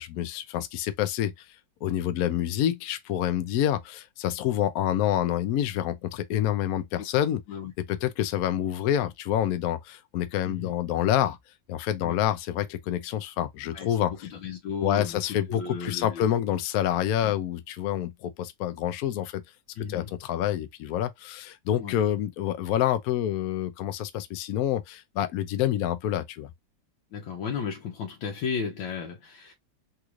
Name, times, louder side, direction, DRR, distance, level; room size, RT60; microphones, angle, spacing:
voice 1, 0.0-1.5 1.8-7.4 7.9-11.4 11.7-14.1 14.8-19.4 19.9-26.5, left 11 dB, 70° left, 0.8 m, -27 dB
voice 2, 13.6-15.2 15.5-16.2 17.2-17.3 19.7-20.1 21.8-22.0 27.1-29.5, left 6 dB, 90° left, 1.5 m, -34 dB
3.6 x 2.4 x 3.0 m
omnidirectional pair, 2.0 m